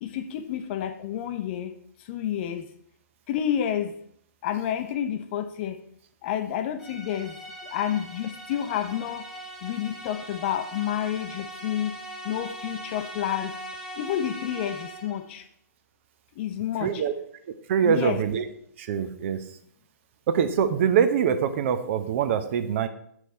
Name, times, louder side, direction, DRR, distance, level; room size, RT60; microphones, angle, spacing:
voice 1, 0.0-1.7 2.0-2.7 3.3-4.0 4.4-5.8 6.2-9.2 9.6-12.0 12.2-13.5 13.9-15.5 16.4-17.0 17.8-18.2, left 10 dB, 40° left, 9 dB, 0.8 m, -29 dB
sound 1, 6.8-15.3, equal, ahead, 1.1 m, -40 dB
voice 2, 16.8-17.1 17.7-18.5 18.8-19.4 20.3-22.9, right 7 dB, 45° right, 10 dB, 0.8 m, -24 dB
6.8 x 6.2 x 4.3 m, 0.67 s
figure-of-eight pair, 130°, 10 cm